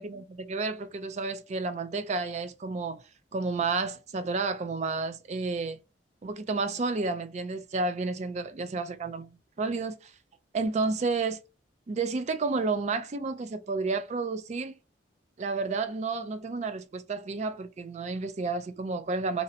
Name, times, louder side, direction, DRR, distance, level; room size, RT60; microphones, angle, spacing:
voice 1, 0.0-3.0 3.3-5.8 6.2-9.3 9.6-10.1 10.5-11.4 11.9-14.7 15.4-19.4, right 3 dB, 35° right, 0.3 m, -31 dB
2.6 x 2.1 x 2.6 m
head